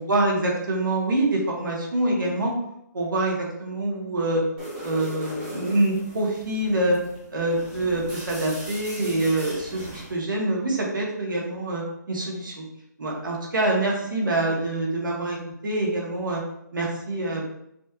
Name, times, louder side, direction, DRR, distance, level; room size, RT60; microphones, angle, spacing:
voice 1, 0.0-2.5 2.9-4.4 4.8-7.0 7.3-12.6 13.0-15.4 15.6-16.4 16.7-17.5, right 2 dB, 80° right, -2 dB, 1.3 m, -25 dB
sound 1, 4.6-10.2, equal, 10° right, 0.8 m, -39 dB
4.2 x 3.0 x 2.3 m, 0.77 s
hypercardioid pair, 170°, 10 cm